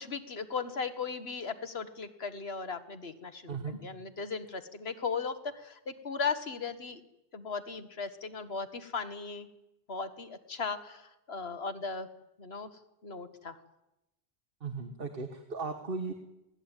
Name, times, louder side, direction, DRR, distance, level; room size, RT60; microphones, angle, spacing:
voice 1, 0.0-7.0 7.3-9.5 9.9-12.1 12.4-12.7 13.0-13.6, left 5 dB, 75° left, 10 dB, 1.8 m, -37 dB
voice 2, 3.5-3.8 14.6-16.1, right 4 dB, 60° right, 6 dB, 1.7 m, -36 dB
21.5 x 18.0 x 9.1 m, 0.92 s
omnidirectional pair, 1.0 m